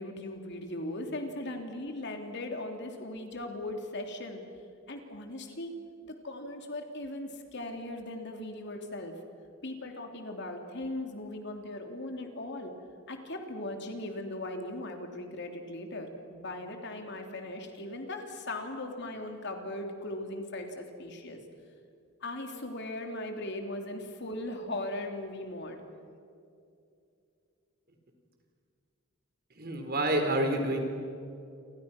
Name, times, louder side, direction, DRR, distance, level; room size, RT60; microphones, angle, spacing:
voice 1, 0.0-4.4 4.9-5.8 6.0-9.1 9.6-12.7 13.1-21.4 22.2-25.8, left 1 dB, 60° left, 4 dB, 3.2 m, -38 dB
voice 2, 29.6-30.8, right 1 dB, 50° right, 4 dB, 4.4 m, -28 dB
29.0 x 25.0 x 6.0 m, 2.5 s
head